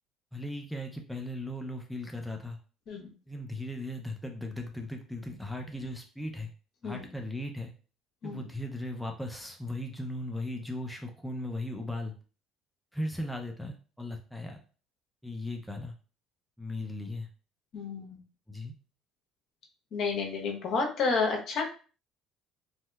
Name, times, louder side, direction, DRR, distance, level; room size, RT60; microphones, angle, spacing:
voice 1, 0.3-2.6 3.3-6.5 6.8-7.7 8.2-12.1 12.9-14.6 15.2-15.9 16.6-17.3 18.5-18.7, left 1 dB, ahead, 2 dB, 0.5 m, -37 dB
voice 2, 17.7-18.2 19.9-21.6, left 4 dB, 60° left, 2 dB, 0.9 m, -30 dB
3.2 x 2.8 x 2.3 m, 0.37 s
cardioid pair, 110°, 0 cm